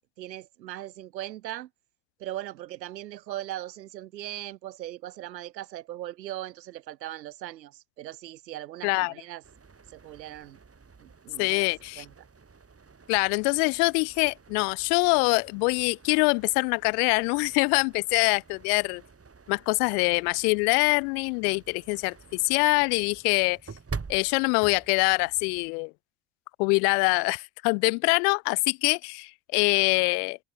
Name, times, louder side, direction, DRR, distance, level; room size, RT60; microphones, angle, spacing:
voice 1, 0.2-1.7 2.2-9.4 9.9-10.6 11.0-12.1, right 14 dB, 80° right, 3.3 m, -39 dB
voice 2, 8.8-9.1 11.4-12.0 13.1-19.0 19.5-23.6 24.1-25.9 26.6-30.4, left 35 dB, 65° left, 0.7 m, -24 dB
sound 1, 9.4-25.7, right 5 dB, 30° right, 8.0 m, -47 dB
open air
hypercardioid pair, 55°, 49 cm